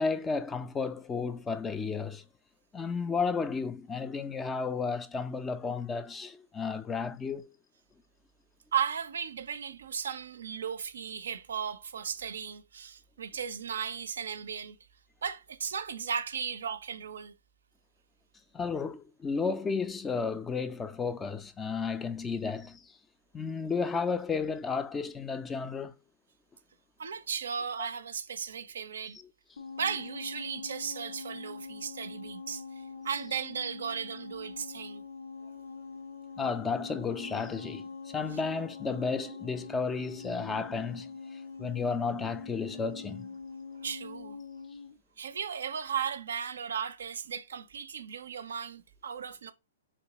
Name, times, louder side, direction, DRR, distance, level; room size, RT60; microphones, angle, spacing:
voice 1, 0.0-2.2 2.7-7.5 18.5-22.8 23.3-25.9 36.4-41.1 41.6-43.3, left 5 dB, 15° left, 0.3 m, -33 dB
voice 2, 8.7-14.8 15.2-17.3 27.0-29.2 29.8-35.0 38.3-38.4 43.8-44.4 45.2-49.5, right 7 dB, 75° right, 0.4 m, -36 dB
sound 1, 29.6-44.9, left 4 dB, 80° left, 0.5 m, -44 dB
3.4 x 2.8 x 2.9 m
hypercardioid pair, 120°, 0 cm